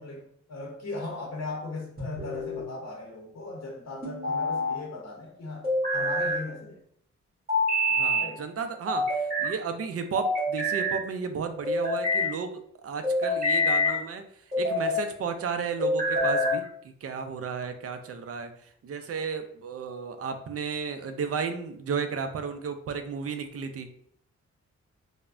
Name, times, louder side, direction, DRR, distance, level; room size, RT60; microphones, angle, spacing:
voice 1, 0.0-6.8 8.1-8.4, left 2 dB, 65° left, -1 dB, 0.7 m, -38 dB
sound 1, 2.0-2.7 4.0-4.8 5.6-6.4 7.5-8.3 8.9-9.5 10.1-11.0 11.6-12.3 13.0-14.0 14.5-15.0 15.8-16.6, left 1 dB, 30° right, 1.3 m, -26 dB
voice 2, 7.9-14.3 14.6-16.7 17.0-18.5 18.8-23.9, right 6 dB, 55° right, 8 dB, 0.4 m, -33 dB
3.2 x 2.1 x 2.4 m, 0.66 s
cardioid pair, 60°, 29 cm